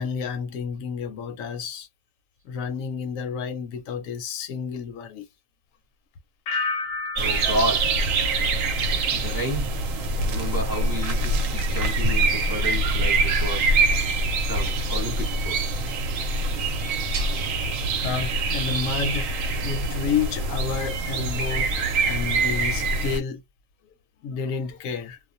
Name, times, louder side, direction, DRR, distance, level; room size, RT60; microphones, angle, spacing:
voice 1, 0.0-1.9 2.4-5.3 18.0-23.4 24.2-25.2, left 6 dB, 85° left, 1.0 m, -30 dB
sound 1, 6.5-9.3 9.6-10.1, left 3 dB, 60° left, 0.7 m, -33 dB
voice 2, 7.2-8.7 9.1-9.7 10.2-13.8 14.4-15.8 17.2-17.3 19.8-19.9, equal, 20° right, 0.8 m, -32 dB
sound 2, 7.2-23.2, right 2 dB, 90° right, 1.0 m, -24 dB
sound 3, 15.0-16.2 16.6-18.1 18.3-18.4 19.5-19.6, right 8 dB, 70° right, 0.9 m, -37 dB
2.4 x 2.1 x 2.5 m
omnidirectional pair, 1.3 m